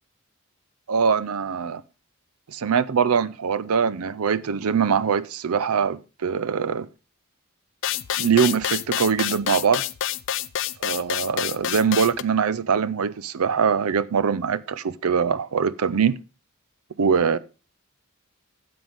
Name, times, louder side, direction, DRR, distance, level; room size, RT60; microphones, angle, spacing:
voice 1, 0.9-1.8 2.5-6.9 8.2-9.8 10.8-16.2 17.0-17.4, right 6 dB, 80° right, 0.5 m, -22 dB
sound 1, 7.8-12.2, left 11 dB, 60° left, 0.4 m, -27 dB
13.0 x 7.8 x 3.4 m
head